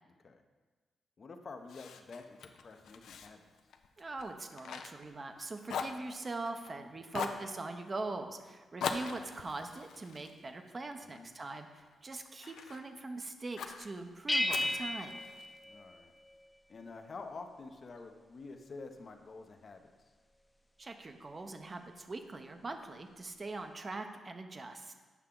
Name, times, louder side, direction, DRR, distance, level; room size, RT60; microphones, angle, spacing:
voice 1, 1.2-3.4 11.0-11.3 15.6-16.1 16.7-19.8, left 3 dB, 55° left, 6 dB, 0.8 m, -48 dB
Fire, 1.7-5.4 5.7-6.7 7.1-7.5 8.8-11.2 11.7-12.8 13.6-13.9 14.5-15.6, left 6 dB, 80° left, 0.5 m, -42 dB
voice 2, 4.0-15.2 20.8-25.0, right 3 dB, 40° right, 6 dB, 0.8 m, -42 dB
sound 1, 14.3-16.5, left 1 dB, 15° left, 0.7 m, -35 dB
8.3 x 5.6 x 3.8 m, 1.3 s
supercardioid pair, 55°, 0 cm